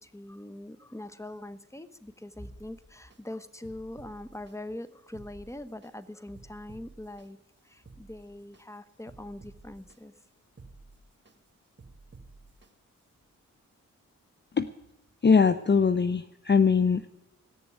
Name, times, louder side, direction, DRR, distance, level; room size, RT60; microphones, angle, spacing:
voice 1, 0.0-7.4 7.6-10.1, left 1 dB, 10° left, 13 dB, 1.1 m, -42 dB
sound 1, 2.4-3.2 3.6-4.5 5.0-5.9 6.4-7.3 7.7-8.6 9.1-10.0 10.4-11.4 11.8-12.7 13.2-13.3, right 3 dB, 35° right, 2.2 m, -52 dB
voice 2, 15.2-17.1, left 5 dB, 35° left, 11 dB, 0.6 m, -22 dB
16.5 x 7.0 x 9.5 m, 0.92 s
cardioid pair, 45°, 34 cm